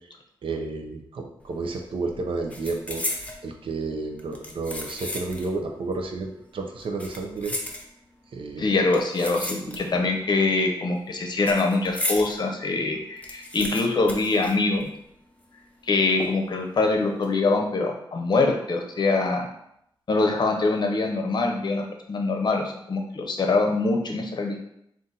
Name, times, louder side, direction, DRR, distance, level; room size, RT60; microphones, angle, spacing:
voice 1, 0.4-7.5 8.3-8.7 9.6-10.0, right 3 dB, 75° right, 3 dB, 0.6 m, -32 dB
sound 1, 1.4-1.7 2.0-3.4 4.2-5.6 5.9-6.0 6.8-8.2 8.9-10.1 10.4-12.3 12.7-12.8 13.0-15.1 15.4-15.5 16.2-16.6 17.0-17.3, left 1 dB, 15° left, 0.6 m, -34 dB
voice 2, 8.6-14.9 15.9-19.5 20.1-24.6, left 3 dB, 55° left, 2 dB, 0.7 m, -24 dB
3.8 x 2.6 x 4.1 m, 0.77 s
wide cardioid pair, 135°, 9 cm